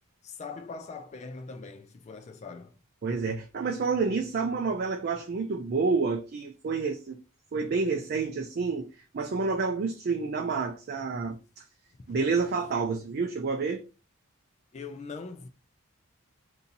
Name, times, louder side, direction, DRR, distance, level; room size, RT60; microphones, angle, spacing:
voice 1, 0.2-2.8 12.0-12.4 14.7-15.5, left 4 dB, 30° left, 0.3 m, -42 dB
voice 2, 3.0-7.2 7.5-8.9 9.1-11.6 12.1-13.8, right 4 dB, 45° right, 0.4 m, -29 dB
2.7 x 2.7 x 3.8 m
head